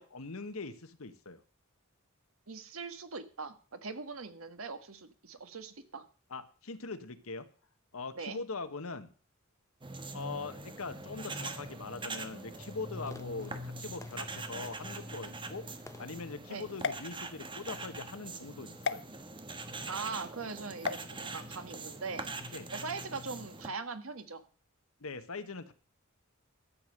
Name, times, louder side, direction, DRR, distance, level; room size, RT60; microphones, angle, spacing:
voice 1, 0.0-1.4 6.3-7.5 7.9-9.1 10.1-15.7 16.0-19.0 22.5-22.7 25.0-25.7, left 3 dB, 80° left, 11 dB, 1.3 m, -42 dB
voice 2, 2.5-6.0 8.2-8.4 16.5-16.7 19.9-24.4, right 4 dB, 75° right, 10 dB, 1.5 m, -41 dB
sound 1, 9.8-23.7, right 2 dB, 25° right, 1.3 m, -43 dB
Fireworks, 11.8-17.0, left 2 dB, 15° left, 1.0 m, -57 dB
sound 2, 16.8-17.8 18.8-19.0 20.8-21.0, left 5 dB, 60° left, 0.8 m, -36 dB
13.0 x 7.6 x 6.5 m, 0.38 s
head